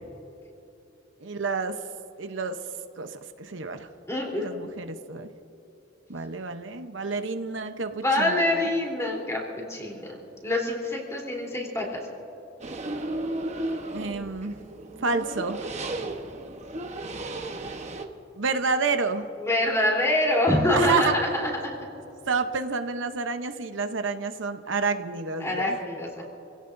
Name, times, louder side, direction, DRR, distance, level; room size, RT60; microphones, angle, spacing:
voice 1, 1.2-1.8 2.2-2.6 3.0-3.9 4.3-5.3 6.1-8.6 13.9-14.5 15.0-15.7 18.4-19.3 20.7-21.0 22.3-25.8, right 4 dB, 75° right, 7 dB, 0.9 m, -29 dB
voice 2, 4.1-4.5 8.0-10.2 10.4-12.0 19.4-21.7 25.4-26.2, left 1 dB, 15° left, -2 dB, 3.5 m, -25 dB
sound 1, 12.6-18.0, right 2 dB, 35° right, 1.1 m, -34 dB
29.0 x 16.5 x 2.7 m, 2.8 s
head